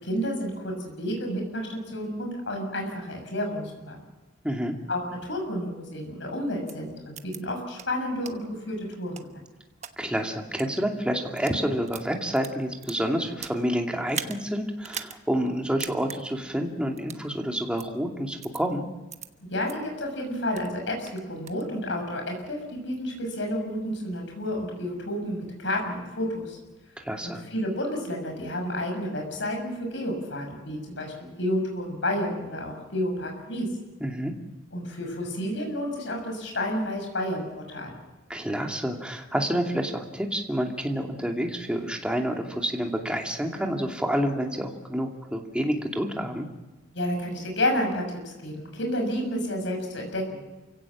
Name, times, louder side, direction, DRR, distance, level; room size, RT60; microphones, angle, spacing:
voice 1, 0.0-4.0 4.9-9.3 19.4-26.6 27.2-33.7 34.7-38.0 46.9-50.4, left 1 dB, 65° left, 2 dB, 6.4 m, -30 dB
voice 2, 4.4-4.8 10.0-18.8 27.0-27.4 34.0-34.3 38.3-46.5, equal, 5° right, 2 dB, 2.5 m, -28 dB
sound 1, 6.7-6.8 7.2-7.4 7.8-7.9 8.3-8.4 8.9-9.9 10.5-10.7 11.2-11.6 11.9-13.6 14.1-14.4 14.8-15.2 15.5-15.6 15.8-16.2 17.0-17.2 17.8-17.9 18.4-18.6 19.1-19.3 19.7-19.8 20.2-20.7 21.1-21.6, right 8 dB, 35° right, 1.2 m, -38 dB
28.5 x 17.0 x 7.4 m, 1.1 s
head